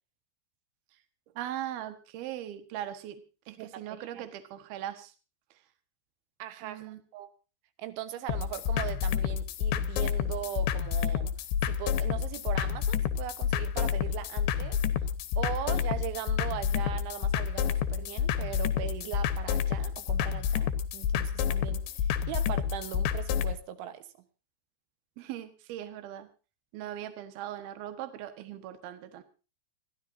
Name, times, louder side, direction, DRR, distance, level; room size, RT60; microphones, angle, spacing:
voice 1, 1.4-5.1 5.5-5.6 6.6-7.0 25.2-26.3 26.7-29.2, right 12 dB, 65° right, 9 dB, 3.1 m, -40 dB
voice 2, 3.6-4.3 6.4-7.3 7.8-11.3 11.6-24.1, right 11 dB, 85° right, 10 dB, 3.5 m, -39 dB
sound 1, 8.3-23.5, left 8 dB, 75° left, 3.3 m, -29 dB
28.0 x 11.5 x 2.7 m, 0.33 s
omnidirectional pair, 5.2 m